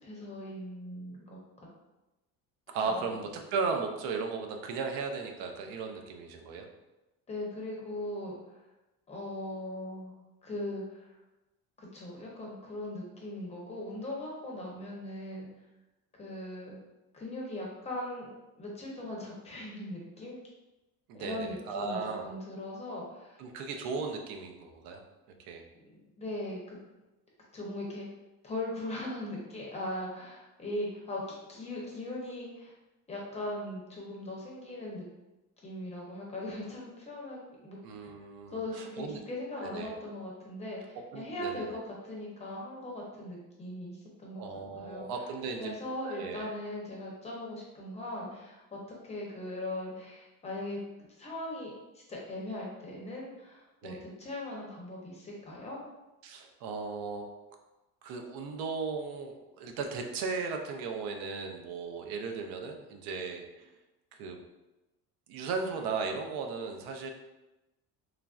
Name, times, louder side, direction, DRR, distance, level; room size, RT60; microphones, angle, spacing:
voice 1, 0.0-1.7 2.7-3.2 7.3-8.6 9.1-10.1 10.4-11.1 11.8-15.5 16.2-16.8 17.1-18.3 18.6-20.4 21.1-23.4 25.9-26.8 27.5-28.1 28.4-31.2 31.5-32.7 33.1-35.1 35.6-38.1 38.5-45.1 45.6-50.8 51.2-55.8, left 1 dB, 20° left, -3 dB, 0.5 m, -39 dB
voice 2, 2.7-6.7 21.1-22.3 23.4-25.0 25.4-25.6 37.8-39.2 39.6-39.9 41.1-41.7 44.4-45.7 46.0-46.5 53.8-54.0 56.2-57.3 58.0-63.7 64.2-64.4 65.3-67.1, right 4 dB, 90° right, 4 dB, 0.5 m, -36 dB
3.1 x 2.4 x 2.3 m, 1.0 s
cardioid pair, 155°, 35 cm